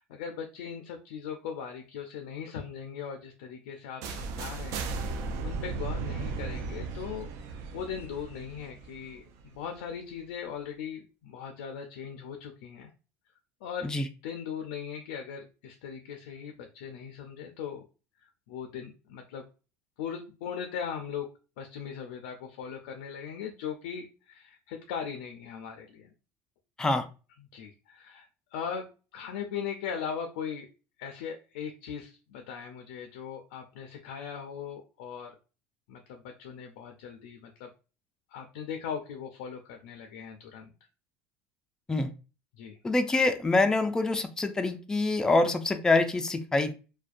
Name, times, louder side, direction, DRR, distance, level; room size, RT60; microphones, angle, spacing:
voice 1, 0.0-4.9 5.4-12.9 13.6-13.9 14.2-17.9 18.2-19.5 20.0-21.3 21.6-26.1 27.4-30.7 31.0-35.4 35.9-37.7 38.3-40.7 42.5-42.8, left 7 dB, 90° left, 0.4 m, -39 dB
sound 1, 4.0-9.8, right 4 dB, 65° right, 0.4 m, -36 dB
voice 2, 42.8-46.7, left 2 dB, 10° left, 0.3 m, -25 dB
2.3 x 2.1 x 2.4 m
supercardioid pair, 105°, 6 cm